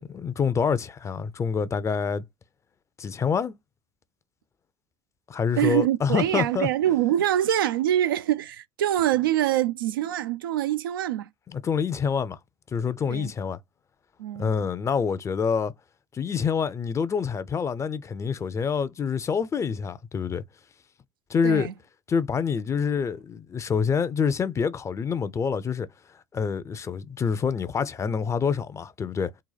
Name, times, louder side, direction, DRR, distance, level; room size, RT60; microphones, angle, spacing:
voice 1, 0.0-2.2 3.0-3.5 5.3-6.7 11.5-12.4 12.7-13.6 14.4-15.7 16.1-20.4 21.3-21.7 22.1-25.9 26.3-29.3, left 6 dB, 25° left, 0.5 m, -26 dB
voice 2, 5.6-11.3 13.1-13.3 14.2-14.5 21.4-21.7, right 12 dB, 80° right, 0.4 m, -24 dB
4.1 x 2.2 x 4.0 m
hypercardioid pair, 80°, 11 cm